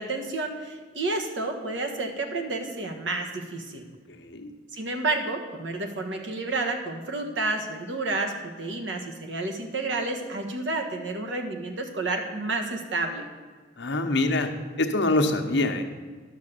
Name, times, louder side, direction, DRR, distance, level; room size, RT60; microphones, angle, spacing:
voice 1, 0.0-3.8 4.7-13.2, right 3 dB, 75° right, 3 dB, 1.5 m, -30 dB
voice 2, 4.1-4.5 13.8-14.5 14.8-15.8, left 2 dB, 70° left, 5 dB, 1.0 m, -25 dB
11.5 x 6.6 x 6.7 m, 1.5 s
head